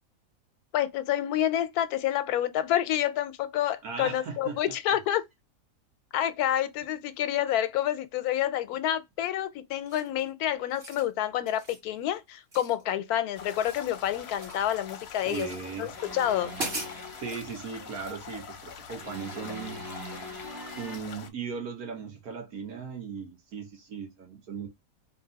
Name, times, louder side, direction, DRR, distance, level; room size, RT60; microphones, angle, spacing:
voice 1, 0.7-5.2 6.1-15.5 15.8-16.5, left 11 dB, 90° left, 1.1 m, -28 dB
voice 2, 3.8-4.6 15.2-15.9 17.2-19.9 20.8-24.7, right 6 dB, 80° right, 1.6 m, -37 dB
sound 1, 9.9-10.2 10.6-11.1 11.5-11.8 12.5-13.2 13.4-14.7 15.2-15.6 16.1-16.2 16.5-17.5, right 2 dB, 45° right, 1.5 m, -39 dB
sound 2, 13.3-21.3, left 7 dB, 60° left, 0.7 m, -44 dB
sound 3, 15.9-17.6 19.0-21.0, equal, 20° right, 0.6 m, -42 dB
3.3 x 2.8 x 3.9 m
omnidirectional pair, 1.5 m